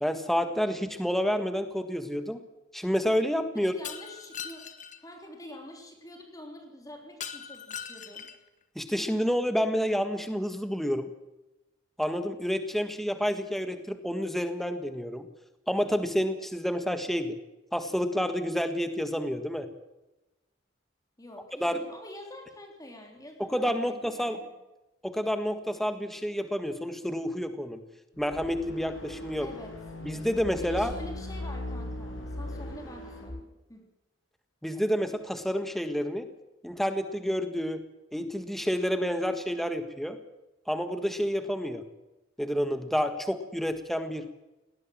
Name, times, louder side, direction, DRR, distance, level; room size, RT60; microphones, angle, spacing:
voice 1, 0.0-2.4 2.7-3.7 8.7-11.1 12.0-15.3 15.7-17.3 17.7-19.7 21.6-21.8 23.5-24.4 25.0-27.8 28.2-29.5 30.0-30.9 34.6-36.3 36.6-37.8 38.1-40.2 40.7-41.8 42.4-44.2, equal, ahead, 8 dB, 1.5 m, -29 dB
voice 2, 3.5-4.7 5.0-8.3 21.2-24.5 29.4-29.7 30.6-33.9, left 1 dB, 20° left, 2 dB, 3.4 m, -46 dB
Shatter, 3.8-5.0 7.2-8.5, left 8 dB, 40° left, 1.7 m, -40 dB
sound 1, 28.1-33.4, left 1 dB, 85° left, 6.6 m, -39 dB
19.0 x 18.5 x 7.6 m, 1.0 s
head